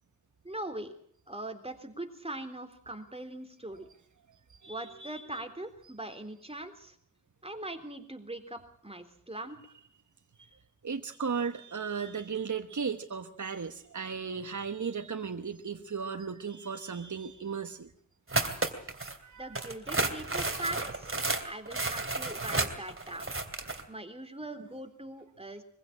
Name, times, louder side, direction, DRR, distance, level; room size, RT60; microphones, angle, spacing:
voice 1, 0.4-0.9 1.3-3.9 4.7-7.0 7.4-9.6 19.4-23.3 23.9-25.6, right 1 dB, 20° right, 6 dB, 3.6 m, -41 dB
voice 2, 4.3-5.4 10.4-10.5 10.8-17.9 19.2-19.7, right 6 dB, 70° right, 7 dB, 1.2 m, -36 dB
sound 1, 18.3-19.2 19.5-23.8, right 2 dB, 45° right, 2.8 m, -32 dB
23.5 x 15.5 x 8.7 m, 0.62 s
wide cardioid pair, 45°, 31 cm